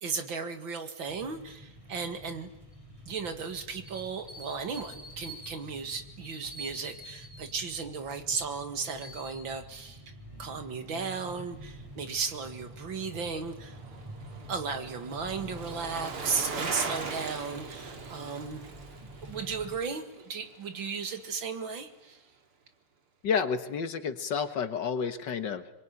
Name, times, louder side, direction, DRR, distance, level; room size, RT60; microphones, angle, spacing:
voice 1, 0.0-2.5 3.1-10.0 10.4-13.8 14.5-18.6 19.0-22.2, right 5 dB, 65° right, 9 dB, 2.7 m, -35 dB
sound 1, 1.1-19.8, equal, 15° right, 7.0 m, -47 dB
Bicycle, 12.8-21.2 21.5-21.6, right 4 dB, 90° right, 3.5 m, -40 dB
voice 2, 23.2-25.7, left 6 dB, 60° left, 11 dB, 1.9 m, -30 dB
26.0 x 23.0 x 9.9 m, 0.89 s
omnidirectional pair, 2.3 m